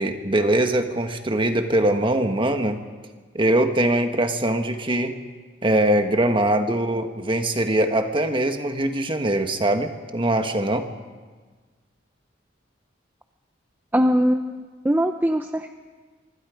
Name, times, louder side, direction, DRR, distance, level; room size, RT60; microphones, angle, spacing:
voice 1, 0.0-2.8 3.3-5.2 5.6-10.9, right 1 dB, 25° right, 6 dB, 1.5 m, -22 dB
voice 2, 13.9-15.8, equal, 10° right, 6 dB, 0.7 m, -22 dB
25.0 x 25.0 x 5.2 m, 1.4 s
head